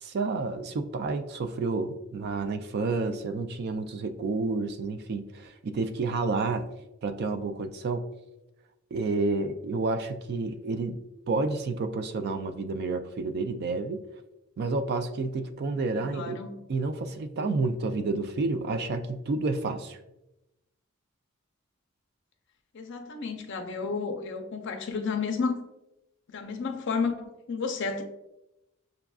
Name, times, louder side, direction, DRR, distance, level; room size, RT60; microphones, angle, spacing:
voice 1, 0.0-6.7 7.0-8.0 8.9-11.0 11.3-14.0 14.6-16.4 16.7-20.0, right 3 dB, 50° right, 9 dB, 0.3 m, -30 dB
voice 2, 15.9-16.5 22.7-25.6 26.3-28.0, left 4 dB, 60° left, 4 dB, 0.5 m, -32 dB
6.7 x 2.4 x 2.3 m, 0.93 s
head